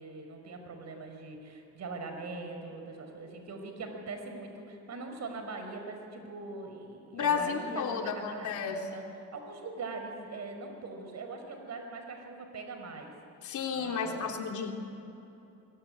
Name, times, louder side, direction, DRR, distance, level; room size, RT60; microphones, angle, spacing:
voice 1, 0.0-9.0 9.3-13.1 13.7-14.4, right 3 dB, 60° right, 5 dB, 5.2 m, -42 dB
voice 2, 7.1-8.9 13.4-14.7, left 6 dB, 75° left, 2 dB, 3.6 m, -32 dB
24.0 x 23.0 x 9.9 m, 2.9 s
cardioid pair, 90°, 30 cm